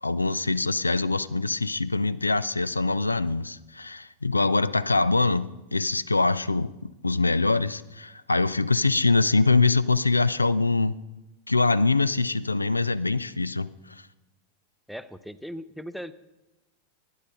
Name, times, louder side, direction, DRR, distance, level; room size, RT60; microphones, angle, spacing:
voice 1, 0.0-11.0 11.5-14.1, left 3 dB, 80° left, 17 dB, 0.4 m, -24 dB
voice 2, 14.9-16.1, equal, ahead, 14 dB, 0.5 m, -38 dB
12.0 x 10.0 x 5.4 m, 1.1 s
figure-of-eight pair, 90°, 0 cm